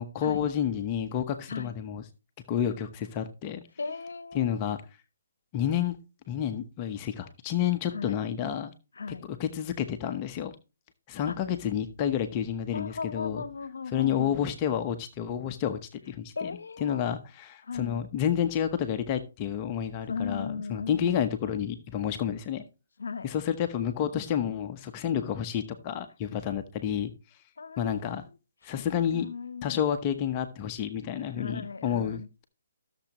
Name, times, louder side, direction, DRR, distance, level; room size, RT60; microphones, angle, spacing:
voice 1, 0.0-2.0 2.5-3.6 4.3-4.8 5.5-6.0 6.3-8.7 9.3-10.5 11.1-13.4 13.9-15.8 16.1-22.6 23.2-27.1 27.8-28.3 28.6-29.3 29.6-32.4, left 9 dB, 30° left, 1.0 m, -30 dB
voice 2, 3.8-4.5 7.9-8.2 9.0-9.3 11.3-11.4 12.7-14.3 16.4-17.0 17.6-18.0 20.1-21.2 23.0-23.3 27.6-28.4 28.6-28.7 29.1-29.8 31.2-32.3, left 5 dB, 80° left, 0.9 m, -37 dB
14.5 x 7.1 x 3.0 m
hypercardioid pair, 150°, 0 cm